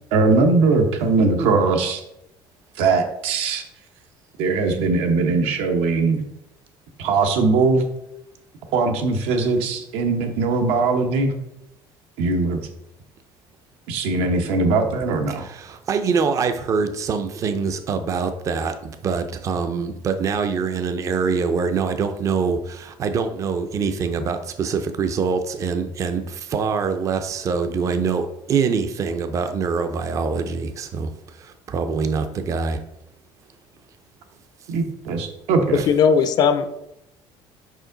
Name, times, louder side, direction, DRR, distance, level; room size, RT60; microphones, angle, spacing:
voice 1, 0.1-2.0 2.8-3.6 4.4-6.2 7.0-7.8 8.7-11.3 12.2-12.6 13.9-15.4 34.7-35.8, right 3 dB, 80° right, 5 dB, 1.0 m, -20 dB
voice 2, 15.4-32.8 35.7-35.9, right 5 dB, 30° right, 9 dB, 0.5 m, -24 dB
voice 3, 35.9-36.7, left 6 dB, 45° left, 11 dB, 0.5 m, -17 dB
5.2 x 4.9 x 3.9 m, 0.82 s
cardioid pair, 160°, 10 cm